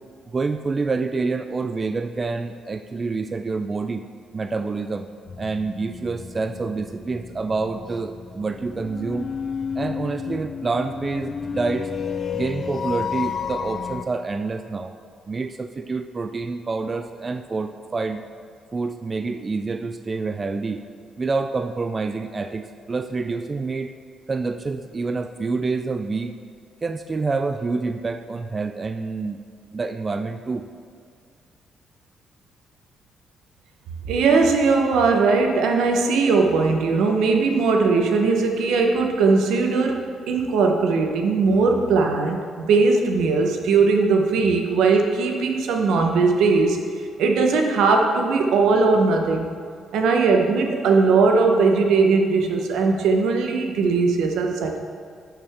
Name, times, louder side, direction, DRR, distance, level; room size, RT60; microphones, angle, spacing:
voice 1, 0.3-4.1 4.3-5.1 5.4-9.3 9.8-11.9 12.3-14.9 15.3-18.2 18.7-20.8 21.2-23.9 24.3-26.3 26.8-29.4 29.7-30.7, right 4 dB, 30° right, 8 dB, 0.4 m, -27 dB
sound 1, 5.3-14.0, left 6 dB, 50° left, 0.4 m, -32 dB
voice 2, 34.1-46.8 47.2-49.5 49.9-54.8, right 4 dB, 80° right, 3 dB, 1.0 m, -19 dB
11.5 x 6.1 x 3.6 m, 2.1 s
cardioid pair, 90°, 0 cm